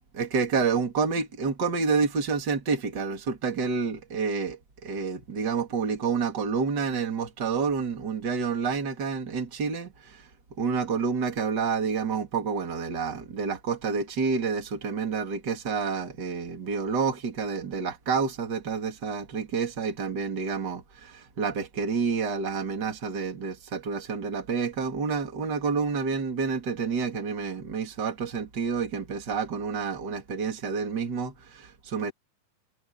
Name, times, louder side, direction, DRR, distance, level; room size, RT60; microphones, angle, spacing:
voice 1, 0.1-10.2 10.6-32.1, right 5 dB, 30° right, 3.3 m, -29 dB
omnidirectional pair, 4.4 m